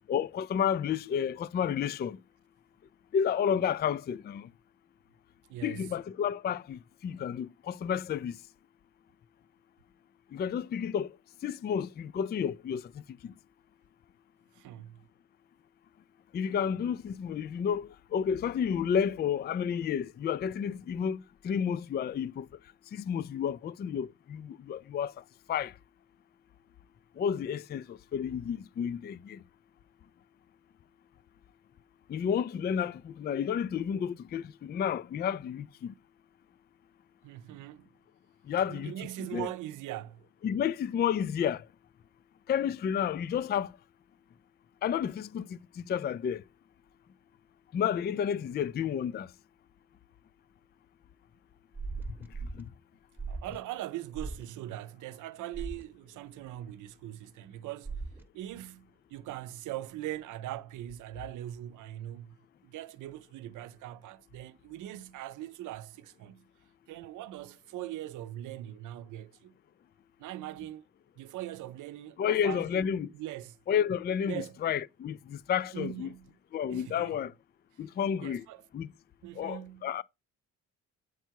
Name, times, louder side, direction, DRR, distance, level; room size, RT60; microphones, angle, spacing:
voice 1, 0.1-2.2 3.1-4.5 5.6-8.4 10.3-11.1 11.4-12.8 13.2-13.3 16.3-22.5 22.9-25.1 25.5-25.7 27.2-29.4 32.1-35.9 38.5-38.9 39.3-39.5 40.4-41.6 42.5-43.7 44.8-46.4 47.7-49.3 72.2-73.1 73.7-76.1 76.5-77.3 77.8-78.5 78.7-78.9 79.4-80.0, left 8 dB, 35° left, 0.4 m, -31 dB
voice 2, 5.5-5.9 14.5-15.0 37.2-37.9 38.7-40.3 53.3-57.9 58.3-66.5 66.9-69.6 70.2-70.8 71.2-73.6 74.3-74.6 75.7-76.4 76.7-77.2 78.2-78.7 79.2-79.9, right 13 dB, 80° right, 0.7 m, -41 dB
sound 1, 51.7-52.6 53.2-53.6 54.1-54.4 55.5-55.8 57.9-58.2, right 3 dB, 5° right, 0.9 m, -38 dB
8.0 x 4.5 x 4.6 m
cardioid pair, 90°, 30 cm